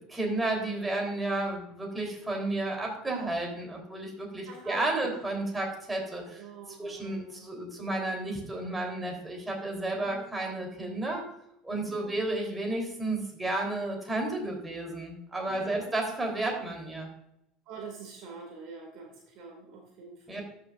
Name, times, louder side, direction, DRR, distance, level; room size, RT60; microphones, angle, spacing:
voice 1, 0.1-6.4 6.8-11.2 11.6-17.1 20.3-20.4, right 2 dB, 10° right, 0 dB, 3.6 m, -32 dB
voice 2, 4.5-5.2 6.3-7.4 10.0-10.3 11.8-12.1 15.5-15.9 17.7-20.4, right 4 dB, 55° right, 1 dB, 2.3 m, -45 dB
13.5 x 6.8 x 2.6 m, 0.79 s
hypercardioid pair, 75°, 0 cm